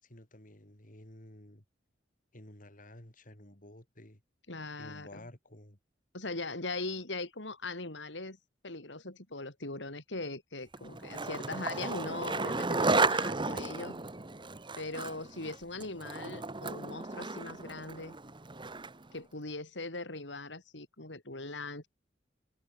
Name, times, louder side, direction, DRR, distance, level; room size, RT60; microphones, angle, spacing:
voice 1, 0.0-1.6 2.3-4.2 4.7-5.8, left 1 dB, 50° left, 5.5 m, -52 dB
voice 2, 4.5-5.2 6.1-8.4 8.6-14.0 14.8-18.2 19.1-21.9, left 2 dB, 80° left, 4.6 m, -40 dB
Skateboard, 10.7-19.1, right 3 dB, 25° right, 1.6 m, -34 dB
head